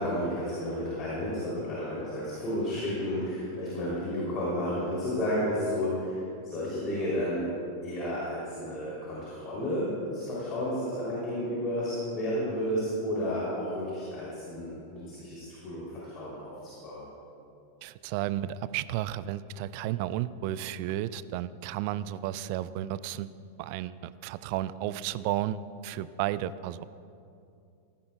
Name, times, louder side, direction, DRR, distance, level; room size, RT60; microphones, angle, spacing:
voice 1, 0.0-7.5 7.8-17.0, equal, 30° left, -7 dB, 3.1 m, -32 dB
voice 2, 17.8-23.3 23.6-26.8, right 13 dB, 45° right, 17 dB, 0.3 m, -33 dB
16.5 x 14.0 x 2.3 m, 2.6 s
figure-of-eight pair, 90°, 0 cm